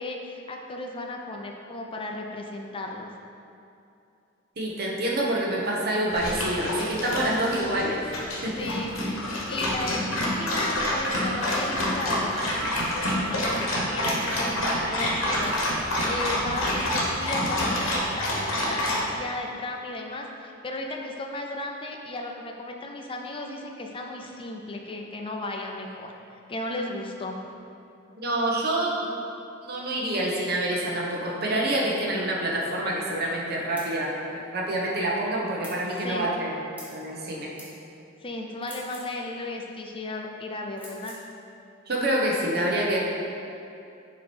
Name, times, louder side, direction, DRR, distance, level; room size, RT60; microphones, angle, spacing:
voice 1, 0.0-3.1 8.4-26.1 26.5-27.4 35.9-36.3 38.2-41.2, left 2 dB, 25° left, 1 dB, 0.5 m, -35 dB
voice 2, 4.6-8.0 8.4-8.7 28.2-29.1 29.6-36.5 36.9-37.5 41.9-43.0, right 1 dB, 50° right, -3 dB, 1.0 m, -27 dB
Dog, 6.1-19.0, left 1 dB, 80° left, 1.1 m, -28 dB
sound 1, 12.2-17.8, right 3 dB, 80° right, 0.4 m, -39 dB
sound 2, 33.8-33.9 35.6-35.8 36.8-37.0 37.6-37.7 38.6-39.1 40.8-41.2, right 1 dB, 10° right, 1.3 m, -44 dB
7.3 x 3.0 x 4.4 m, 2.6 s
head